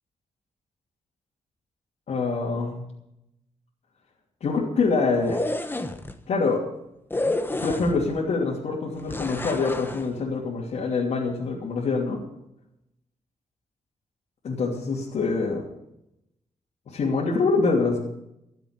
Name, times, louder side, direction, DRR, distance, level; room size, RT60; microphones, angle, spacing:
voice 1, 2.1-2.8 4.4-5.4 6.3-6.7 7.6-12.2 14.4-15.7 16.9-18.0, left 4 dB, 70° left, -5 dB, 3.0 m, -25 dB
sound 1, 5.1-6.1 7.1-8.2 9.1-10.1, left 2 dB, 15° left, 1.2 m, -29 dB
14.5 x 7.7 x 8.9 m, 0.83 s
cardioid pair, 100°, 12 cm